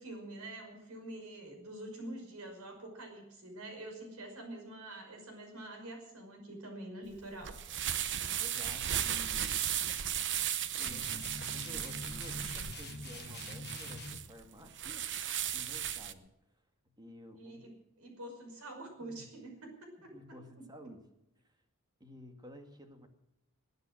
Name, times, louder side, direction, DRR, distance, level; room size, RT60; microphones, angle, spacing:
voice 1, 0.0-7.6 17.4-17.7 18.0-20.1, right 1 dB, 75° right, 4 dB, 5.7 m, -46 dB
sound 1, 7.1-16.1, right 10 dB, 55° right, 1.0 m, -36 dB
voice 2, 8.4-9.7 10.8-15.1 15.5-16.3 17.0-17.6 19.0-19.3 20.0-21.0 22.0-23.1, left 1 dB, 20° right, 5 dB, 2.1 m, -52 dB
sound 2, 10.8-14.3, left 3 dB, 50° left, 1.2 m, -45 dB
21.0 x 9.4 x 6.3 m, 0.88 s
head